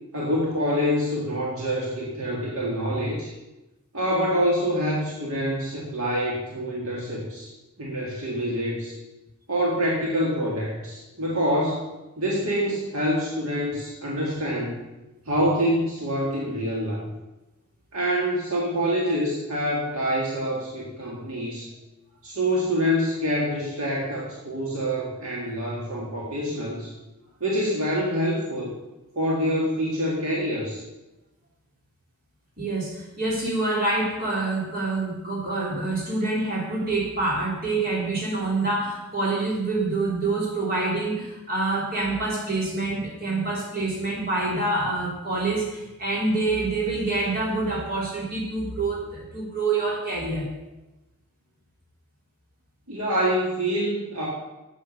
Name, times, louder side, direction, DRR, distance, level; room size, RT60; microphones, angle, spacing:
voice 1, 0.1-3.3 3.9-7.5 7.8-8.9 9.5-11.9 12.2-14.8 15.3-17.0 17.9-21.7 22.2-26.9 27.4-28.7 29.2-30.8 52.9-54.3, equal, 70° right, -4 dB, 2.0 m, -26 dB
voice 2, 32.6-50.5, right 2 dB, 45° right, -4 dB, 3.5 m, -26 dB
8.3 x 8.3 x 6.7 m, 1.0 s
head